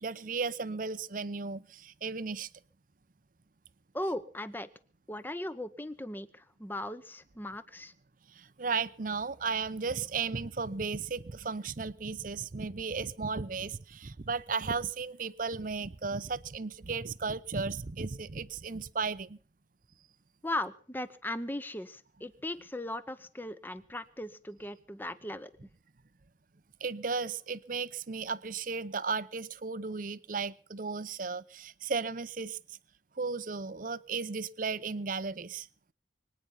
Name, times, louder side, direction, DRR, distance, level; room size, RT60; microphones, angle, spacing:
voice 1, 0.0-2.5 8.3-19.4 26.8-32.6 33.2-35.7, right 4 dB, 45° right, 16 dB, 0.7 m, -35 dB
voice 2, 3.9-4.7 5.1-7.9 20.4-25.5, left 1 dB, 10° left, 13 dB, 0.9 m, -38 dB
24.0 x 9.5 x 5.6 m, 0.44 s
head